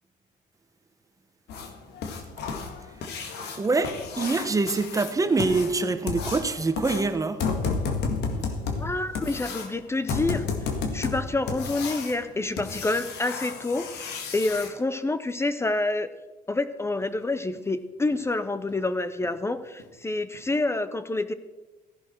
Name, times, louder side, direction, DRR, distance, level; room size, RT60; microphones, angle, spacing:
sound 1, 1.5-14.7 17.0-17.1 17.5-17.6 18.1-18.2 18.7-18.8 19.2-19.4 19.8-19.9 20.3-20.4, left 4 dB, 80° left, 1.8 m, -32 dB
voice 1, 3.6-7.4, right 3 dB, 20° right, 10 dB, 0.9 m, -25 dB
voice 2, 8.8-10.4 10.9-16.1 16.5-21.3, left 2 dB, 15° left, 12 dB, 0.6 m, -28 dB
14.5 x 11.0 x 4.5 m, 1.2 s
cardioid pair, 110°, 17 cm